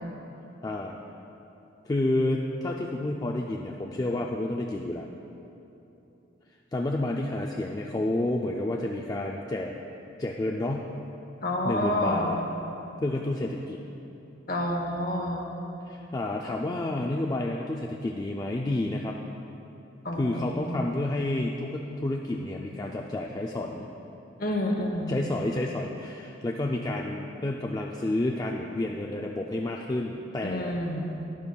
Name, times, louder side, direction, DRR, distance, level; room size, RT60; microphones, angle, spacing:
voice 1, 0.6-1.0 1.9-5.1 6.7-9.7 10.2-10.9 11.6-12.4 13.0-13.8 15.9-19.2 20.2-23.9 25.1-30.8, left 1 dB, 20° left, 0 dB, 0.3 m, -30 dB
voice 2, 11.4-12.4 14.5-15.5 20.0-20.8 24.4-25.3 30.4-31.2, left 1 dB, 45° left, 2 dB, 1.0 m, -29 dB
12.0 x 11.0 x 2.3 m, 3.0 s
head